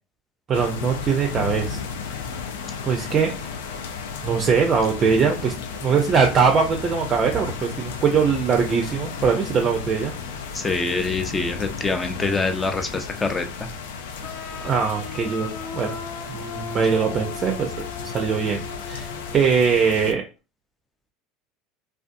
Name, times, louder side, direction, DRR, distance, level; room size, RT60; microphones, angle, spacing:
sound 1, 0.5-20.1, left 6 dB, 80° left, 0.3 m, -34 dB
voice 1, 0.5-1.8 2.8-3.3 4.2-5.5 5.8-10.1 14.6-16.0 16.3-17.7 18.0-19.1 19.3-20.2, right 6 dB, 40° right, 2 dB, 0.4 m, -21 dB
voice 2, 10.5-13.5, left 3 dB, 20° left, 6 dB, 0.5 m, -25 dB
sound 2, 14.2-19.7, left 6 dB, 60° left, 0.8 m, -37 dB
2.5 x 2.3 x 2.5 m, 0.32 s
hypercardioid pair, 80°, 0 cm